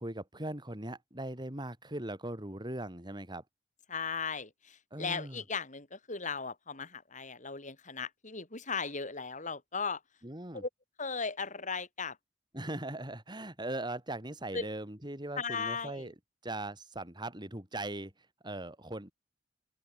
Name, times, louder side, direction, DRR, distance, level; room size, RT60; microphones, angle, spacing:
voice 1, 0.0-3.4 4.9-5.4 10.2-10.6 12.5-16.1 16.4-18.1 18.4-19.1, right 1 dB, 25° right, 4.4 m, -39 dB
voice 2, 3.9-10.0 10.5-10.7 11.0-12.2 14.5-14.7 15.4-16.1, left 5 dB, 45° left, 5.8 m, -37 dB
open air
head